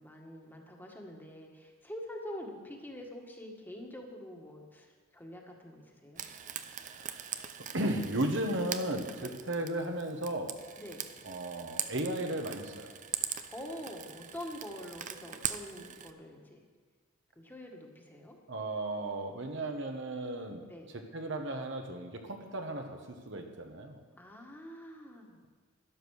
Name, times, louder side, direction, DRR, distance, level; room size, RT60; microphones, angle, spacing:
voice 1, 0.0-6.2 9.2-9.4 10.8-11.1 13.5-16.7 17.4-18.4 20.7-20.9 24.1-25.4, left 1 dB, 10° left, 1 dB, 1.7 m, -45 dB
Frying (food), 6.2-16.1, right 9 dB, 35° right, 0.6 m, -41 dB
voice 2, 7.7-10.6 11.2-12.9 18.5-20.6 21.1-24.0, right 1 dB, 60° right, 4 dB, 1.4 m, -35 dB
12.5 x 11.0 x 6.5 m, 1.4 s
head